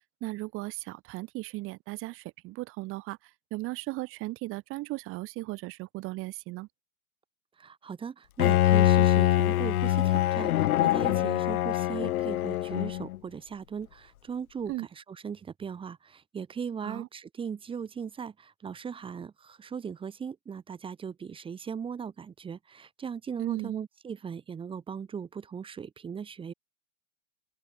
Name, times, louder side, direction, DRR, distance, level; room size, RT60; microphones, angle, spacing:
voice 1, 0.2-6.7 14.7-14.9 16.8-17.1 23.4-23.8, right 20 dB, 30° right, 1.5 m, -37 dB
voice 2, 7.6-26.5, right 6 dB, 10° right, 1.3 m, -38 dB
Bowed string instrument, 8.4-13.2, left 14 dB, 75° left, 1.1 m, -24 dB
open air
hypercardioid pair, 145°, 44 cm